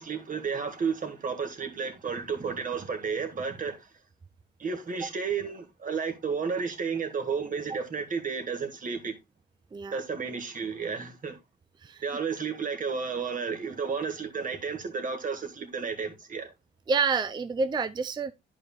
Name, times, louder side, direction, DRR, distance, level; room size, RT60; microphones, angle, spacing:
voice 1, 0.0-3.9 4.6-9.2 9.9-11.4 12.0-16.5, right 5 dB, 40° right, 2.1 m, -32 dB
voice 2, 16.9-18.3, right 5 dB, 20° right, 0.4 m, -28 dB
11.5 x 5.0 x 2.4 m
cardioid pair, 90°, 20 cm